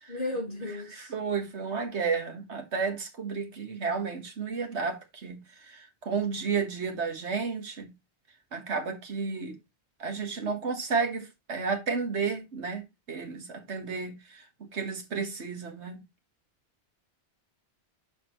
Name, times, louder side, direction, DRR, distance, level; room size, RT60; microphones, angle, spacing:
voice 1, 0.1-1.1, left 2 dB, 50° left, 4.5 m, -34 dB
voice 2, 0.9-5.4 5.7-7.9 8.5-9.6 10.0-12.8 13.1-14.4 14.7-16.0, right 5 dB, 90° right, 1.8 m, -32 dB
11.5 x 4.3 x 3.0 m
omnidirectional pair, 1.1 m